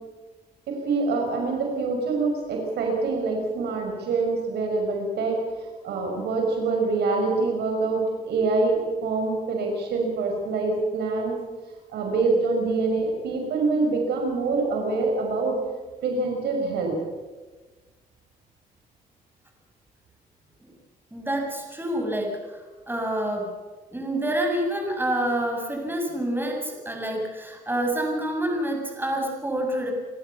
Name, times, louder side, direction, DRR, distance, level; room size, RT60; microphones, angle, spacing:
voice 1, 0.7-5.4 5.8-11.4 11.9-15.6 16.0-16.9, right 3 dB, 85° right, 1 dB, 5.9 m, -25 dB
voice 2, 21.1-23.5 23.9-29.9, right 1 dB, 10° right, 1 dB, 7.1 m, -27 dB
28.0 x 14.5 x 7.1 m, 1.3 s
cardioid pair, 75°, 17 cm